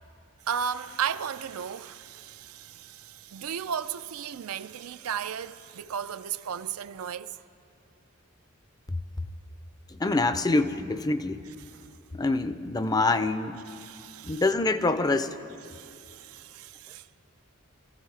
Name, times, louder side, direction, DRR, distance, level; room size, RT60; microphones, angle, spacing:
voice 1, 0.5-7.4 13.8-14.4 15.7-17.1, right 8 dB, 80° right, 0.4 m, -35 dB
voice 2, 8.9-9.3 9.9-11.5 12.1-13.6 14.2-15.4, left 3 dB, 20° left, 0.5 m, -26 dB
27.0 x 15.0 x 3.3 m
head